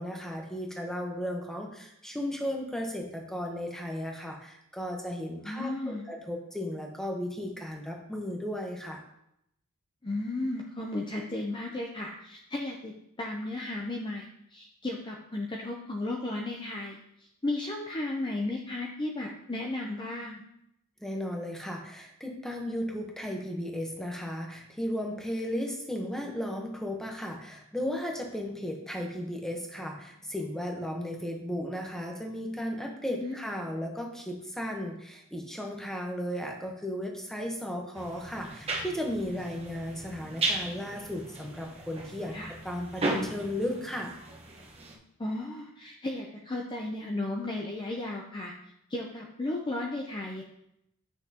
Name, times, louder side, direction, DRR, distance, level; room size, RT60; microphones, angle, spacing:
voice 1, 0.0-9.0 21.0-42.4 42.6-44.1, equal, ahead, 1 dB, 0.9 m, -35 dB
voice 2, 5.4-6.0 10.0-17.0 17.4-20.4 33.2-33.4 42.3-42.5 45.2-48.5 48.9-50.4, left 2 dB, 20° left, 0 dB, 0.6 m, -34 dB
sound 1, 38.0-45.0, right 2 dB, 25° right, 1.1 m, -36 dB
8.2 x 6.2 x 2.9 m, 0.79 s
head